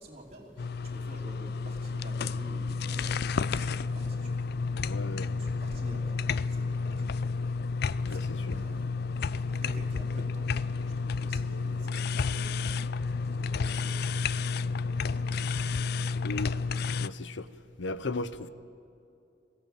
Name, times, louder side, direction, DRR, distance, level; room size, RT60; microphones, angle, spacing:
voice 1, 0.0-4.5 5.1-7.1 8.0-8.9 9.5-10.5 10.8-15.8, right 1 dB, 35° right, 3.0 m, -49 dB
sound 1, 0.6-17.1, left 4 dB, 55° left, 0.4 m, -31 dB
voice 2, 4.9-5.3 8.1-8.6 16.2-16.6 17.0-17.5 17.8-18.5, left 2 dB, 70° left, 0.7 m, -36 dB
21.0 x 15.5 x 9.1 m
head